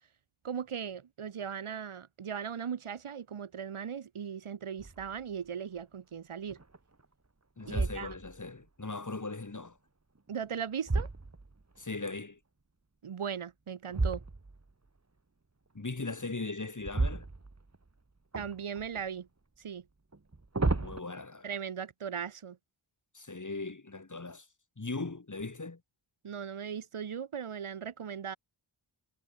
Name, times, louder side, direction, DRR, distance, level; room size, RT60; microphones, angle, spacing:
voice 1, 0.4-6.6 7.7-8.1 10.3-11.1 13.0-14.2 18.3-19.3 19.6-19.8 21.4-22.6 26.2-28.4, right 7 dB, 85° right, 1.8 m, -38 dB
sound 1, 4.8-5.2 5.8-5.9 6.5-7.1 7.6-8.5 10.2-11.8 13.9-14.7 16.8-17.9 18.3-19.1 20.1-21.0, right 3 dB, 30° right, 4.3 m, -33 dB
voice 2, 7.6-9.8 11.8-12.4 15.7-17.3 20.7-21.5 23.1-24.5 24.8-25.8, left 3 dB, 35° left, 5.9 m, -39 dB
wide cardioid pair, 90°, 49 cm